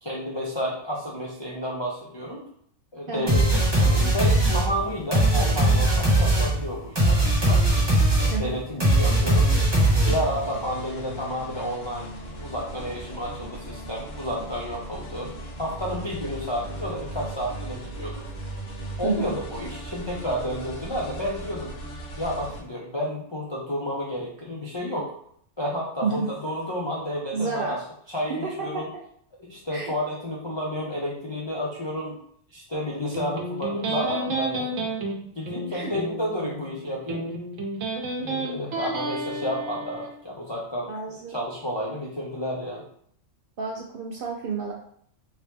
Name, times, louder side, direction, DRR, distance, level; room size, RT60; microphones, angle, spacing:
voice 1, 0.0-2.4 2.9-7.6 8.2-9.5 10.1-15.3 15.6-18.2 19.0-21.7 22.2-25.1 25.6-27.8 28.1-28.8 29.4-32.2 32.5-34.9 35.4-37.2 38.2-42.9, equal, 45° left, -5 dB, 0.3 m, -31 dB
voice 2, 3.1-3.4 8.3-8.6 19.0-19.3 26.0-26.3 27.3-27.9 28.3-28.8 29.7-29.9 35.7-35.9 40.9-41.4 43.6-44.7, right 4 dB, 60° right, -1 dB, 0.6 m, -30 dB
sound 1, 3.3-10.5, right 1 dB, 20° right, 1.1 m, -20 dB
sound 2, 9.0-22.6, right 1 dB, 80° left, 1.2 m, -38 dB
Electric guitar, 33.1-40.1, right 2 dB, 90° right, 1.1 m, -31 dB
2.9 x 2.9 x 3.3 m, 0.64 s
omnidirectional pair, 1.3 m